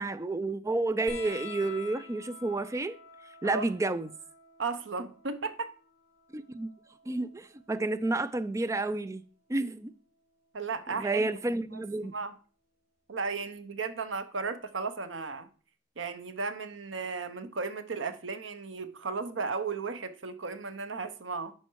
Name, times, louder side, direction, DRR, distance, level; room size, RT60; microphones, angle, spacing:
voice 1, 0.0-3.0 3.4-4.1 6.3-6.7 7.1-9.2 9.5-9.9 10.9-12.1, right 2 dB, 15° right, 0.4 m, -30 dB
sound 1, 1.1-8.1 9.5-10.3 11.6-11.7, left 5 dB, 50° left, 1.9 m, -49 dB
voice 2, 4.6-5.7 10.5-11.3 11.7-11.8 12.1-12.3 13.1-15.5 16.0-21.5, right 4 dB, 85° right, 0.8 m, -35 dB
10.5 x 4.4 x 4.6 m
head